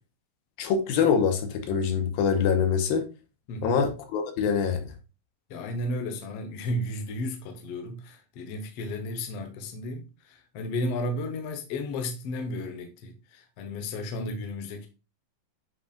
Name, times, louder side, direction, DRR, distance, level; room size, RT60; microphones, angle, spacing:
voice 1, 0.6-3.1 3.6-4.9, left 6 dB, 85° left, 2.8 m, -24 dB
voice 2, 3.5-3.8 5.5-14.9, left 1 dB, 65° left, 1.6 m, -33 dB
8.6 x 5.2 x 2.4 m
omnidirectional pair, 4.1 m